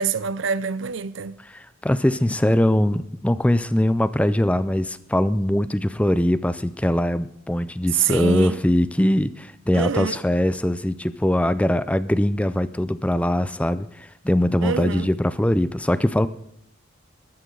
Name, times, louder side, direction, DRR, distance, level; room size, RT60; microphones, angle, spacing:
voice 1, 0.0-1.4 8.0-8.6 9.7-10.2 14.6-15.1, right 6 dB, 60° right, 0.6 m, -25 dB
voice 2, 1.4-16.3, left 1 dB, 5° left, 0.4 m, -22 dB
20.5 x 13.0 x 3.9 m
head